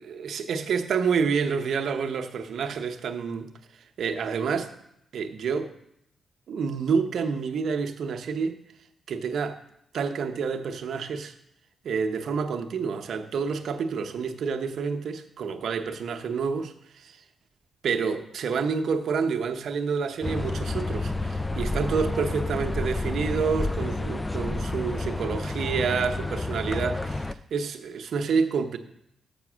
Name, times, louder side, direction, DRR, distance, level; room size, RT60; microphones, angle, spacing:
voice 1, 0.1-3.5 4.0-4.7 5.1-5.7 6.5-8.6 9.1-9.6 9.9-11.3 11.8-17.2 17.8-28.8, right 5 dB, 75° right, 0.7 m, -28 dB
sound 1, 20.2-27.3, left 2 dB, 15° left, 0.3 m, -30 dB
7.0 x 5.6 x 6.1 m
cardioid pair, 75°, 0 cm